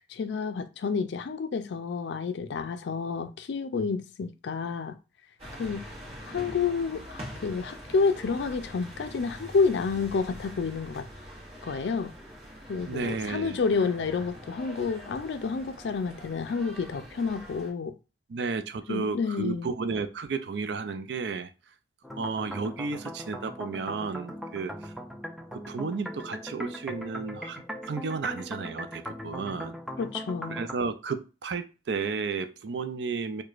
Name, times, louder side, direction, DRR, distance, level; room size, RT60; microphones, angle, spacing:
voice 1, 0.1-4.9 5.6-5.9 6.3-11.1 11.6-12.1 12.7-17.9 18.9-19.7 30.0-30.6, left 5 dB, 80° left, 0.4 m, -29 dB
sound 1, 5.4-17.7, equal, 35° right, 1.1 m, -44 dB
voice 2, 12.9-13.6 18.3-21.5 22.2-24.9 25.5-29.8 30.5-33.4, right 4 dB, 70° right, 0.4 m, -33 dB
sound 2, 22.0-30.7, equal, ahead, 0.3 m, -39 dB
4.7 x 2.2 x 2.4 m
head